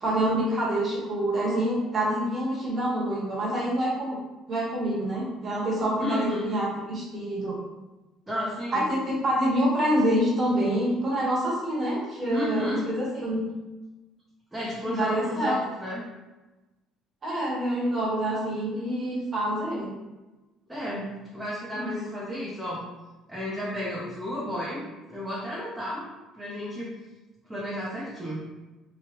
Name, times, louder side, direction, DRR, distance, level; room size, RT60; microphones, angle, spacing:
voice 1, 0.0-4.2 4.5-7.6 8.7-13.4 14.8-15.5 17.2-19.9 21.7-21.9 22.2-22.4, right 1 dB, 30° right, -6 dB, 1.2 m, -26 dB
voice 2, 6.0-6.5 8.3-8.9 12.3-12.8 14.5-16.0 20.7-22.8 23.3-24.8 25.1-26.1 26.4-26.9 27.5-28.4, equal, 10° right, -7 dB, 0.7 m, -32 dB
3.0 x 2.3 x 2.9 m, 1.1 s
cardioid pair, 115°, 0 cm